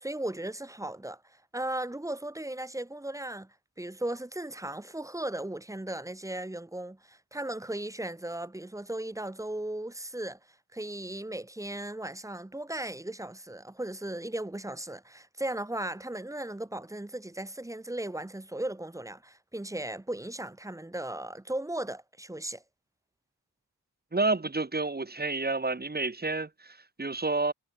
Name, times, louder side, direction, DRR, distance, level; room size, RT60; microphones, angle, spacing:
voice 1, 0.0-10.4 10.7-22.6, right 1 dB, 10° right, 0.5 m, -36 dB
voice 2, 24.1-27.5, right 3 dB, 25° right, 1.0 m, -30 dB
wide cardioid pair, 45°, 39 cm